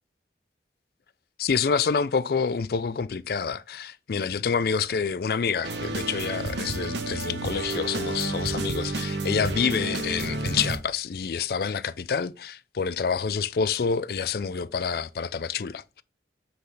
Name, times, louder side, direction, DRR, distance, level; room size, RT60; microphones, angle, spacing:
voice 1, 1.4-16.0, left 6 dB, 55° left, 0.4 m, -27 dB
sound 1, 5.6-10.8, right 2 dB, 85° right, 1.0 m, -30 dB
7.8 x 3.4 x 3.9 m
head